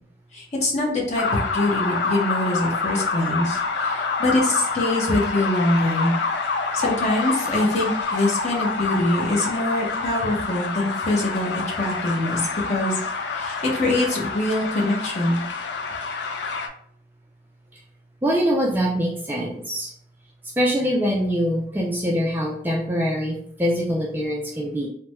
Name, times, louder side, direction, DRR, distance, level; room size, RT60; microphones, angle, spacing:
voice 1, 0.3-6.1 6.7-15.4, left 1 dB, 40° left, -2 dB, 0.8 m, -24 dB
sound 1, 1.2-16.7, left 4 dB, 75° left, 0.4 m, -27 dB
voice 2, 18.2-19.9 20.6-24.9, equal, 10° right, -1 dB, 0.3 m, -24 dB
3.3 x 2.1 x 3.1 m, 0.63 s
head